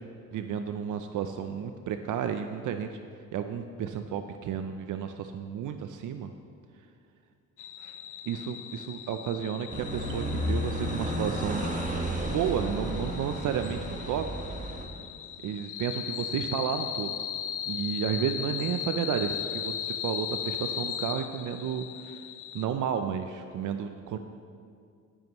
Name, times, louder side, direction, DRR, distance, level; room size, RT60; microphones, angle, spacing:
voice 1, 0.3-2.9 3.3-6.3 8.3-11.7 12.2-14.3 15.4-17.1 17.7-22.2 22.5-24.2, right 8 dB, 65° right, 8 dB, 0.5 m, -32 dB
sound 1, 7.6-22.6, left 9 dB, 65° left, 0.7 m, -38 dB
sound 2, 9.7-14.9, equal, 20° right, 1.3 m, -32 dB
12.5 x 10.5 x 3.0 m, 2.3 s
cardioid pair, 105°, 34 cm